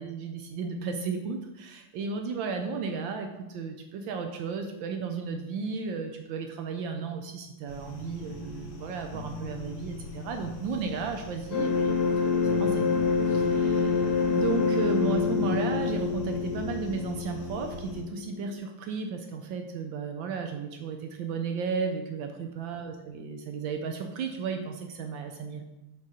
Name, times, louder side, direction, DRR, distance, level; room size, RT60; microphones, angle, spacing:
voice 1, 0.0-12.9 13.3-25.6, right 5 dB, 75° right, 5 dB, 1.2 m, -34 dB
sound 1, 7.7-18.0, left 2 dB, 80° left, 1.8 m, -41 dB
sound 2, 11.5-18.5, left 5 dB, 60° left, 1.6 m, -27 dB
6.3 x 3.7 x 4.1 m, 0.97 s
omnidirectional pair, 2.4 m